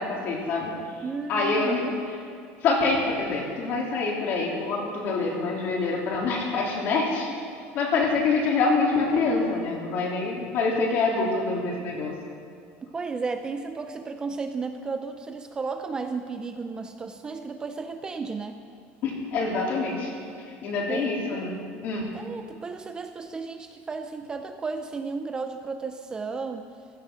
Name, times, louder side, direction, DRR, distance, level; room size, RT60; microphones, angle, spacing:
voice 1, 0.0-1.0 1.3-1.8 2.6-7.3 7.7-12.1 19.0-20.1 20.4-22.0, left 3 dB, 45° left, -2 dB, 3.3 m, -26 dB
voice 2, 1.0-2.0 12.9-18.6 20.9-21.1 22.1-26.7, right 4 dB, 15° right, 7 dB, 0.5 m, -33 dB
15.5 x 14.0 x 6.2 m, 2.3 s
cardioid pair, 170°, 5 cm